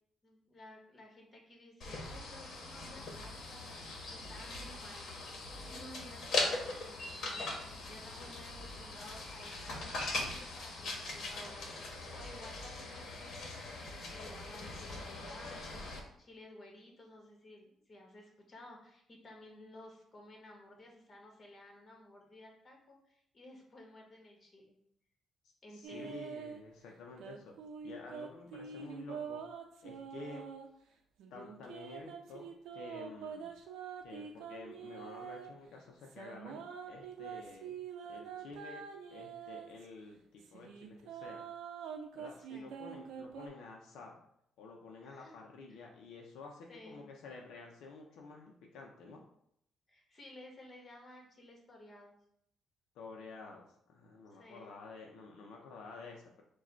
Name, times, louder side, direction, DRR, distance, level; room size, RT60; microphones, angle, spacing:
voice 1, 0.2-3.8 4.1-5.1 5.5-24.7 25.6-26.1 42.4-42.7 45.0-45.3 45.7-45.8 46.7-47.0 49.9-52.2 54.3-54.7, left 1 dB, 40° left, 0 dB, 1.4 m, -55 dB
sound 1, 1.8-16.0, left 2 dB, 65° left, 1.1 m, -41 dB
voice 2, 25.7-27.5 27.8-29.4 29.8-30.4 31.3-33.5 34.0-37.8 38.1-38.8 39.1-41.5 42.1-44.2 44.6-49.2 52.9-56.4, left 3 dB, 85° left, 0 dB, 0.6 m, -50 dB
sound 2, 25.8-26.6 27.2-30.7 31.2-35.5 36.0-39.9 40.4-43.5, right 7 dB, 85° right, 0.6 m, -45 dB
4.8 x 2.3 x 4.4 m, 0.73 s
cardioid pair, 90°, 0 cm